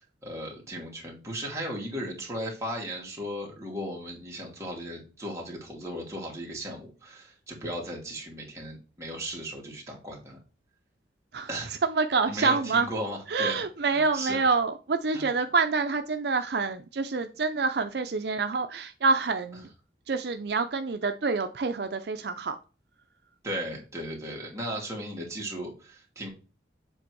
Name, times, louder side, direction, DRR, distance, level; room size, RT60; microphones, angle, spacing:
voice 1, 0.2-10.4 11.5-11.7 12.3-13.6 13.9-14.4 15.1-15.3 23.4-26.3, equal, 15° right, -2 dB, 2.5 m, -36 dB
voice 2, 11.8-12.9 13.3-19.7 20.1-22.6, right 4 dB, 65° right, 8 dB, 0.5 m, -27 dB
7.8 x 3.5 x 4.6 m, 0.33 s
head